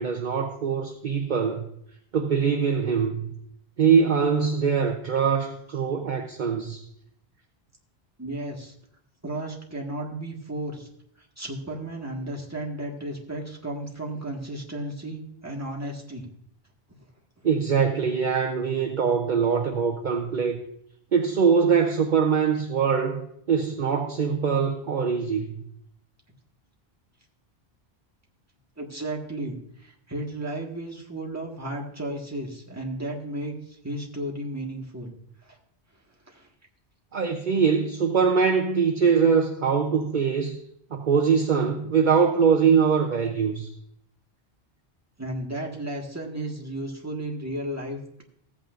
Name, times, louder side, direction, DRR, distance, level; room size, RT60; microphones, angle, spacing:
voice 1, 0.0-1.7 2.1-3.3 3.8-6.8 17.4-20.6 21.1-25.5 37.1-40.6 40.9-43.7, right 6 dB, 50° right, 0.8 m, -23 dB
voice 2, 8.2-8.7 9.2-10.9 11.4-16.3 28.8-35.1 35.4-35.6 36.3-36.5 45.2-48.2, right 1 dB, 15° right, 1.6 m, -34 dB
15.0 x 8.6 x 2.5 m
omnidirectional pair, 1.1 m